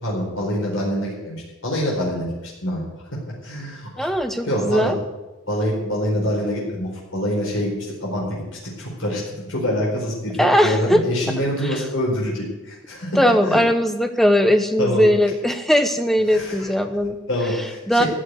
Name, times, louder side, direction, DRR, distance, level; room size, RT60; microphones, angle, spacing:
voice 1, 0.0-1.4 1.6-2.8 3.4-4.1 4.5-4.9 5.5-7.7 8.0-13.2 13.5-13.6 14.8-15.0 16.3-16.7 17.3-18.1, equal, 65° left, -4 dB, 4.7 m, -25 dB
voice 2, 4.0-5.0 10.4-11.0 11.6-11.8 13.2-17.2 17.9-18.0, equal, ahead, 7 dB, 0.9 m, -19 dB
14.5 x 6.7 x 9.4 m, 1.1 s
head